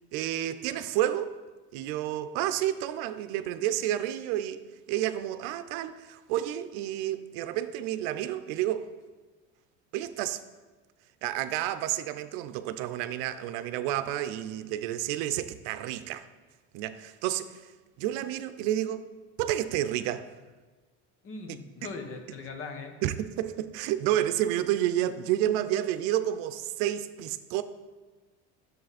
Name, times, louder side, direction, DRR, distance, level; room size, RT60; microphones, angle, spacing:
voice 1, 0.1-1.3 1.7-4.6 4.9-8.9 9.9-10.4 11.2-16.2 16.7-17.6 18.0-19.1 19.4-20.2 23.0-27.6, right 12 dB, 80° right, 0.6 m, -30 dB
voice 2, 21.2-22.9, left 4 dB, 40° left, 1.3 m, -40 dB
10.5 x 7.0 x 4.2 m
cardioid pair, 145°, 32 cm